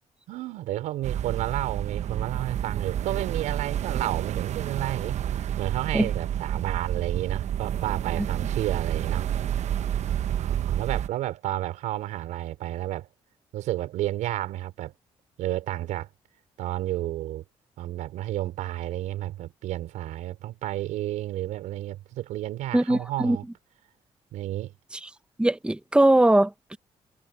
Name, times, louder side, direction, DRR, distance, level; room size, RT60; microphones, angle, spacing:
voice 1, 0.3-5.2 5.6-9.2 10.0-13.1 13.5-14.9 15.4-16.1 16.6-17.4 17.8-23.4 24.3-24.7, right 14 dB, 80° right, 4.5 m, -31 dB
sound 1, 1.0-11.1, right 10 dB, 65° right, 1.0 m, -29 dB
voice 2, 22.7-23.4 25.0-25.1 25.4-26.8, right 1 dB, 10° right, 1.0 m, -21 dB
supercardioid pair, 55°, 12 cm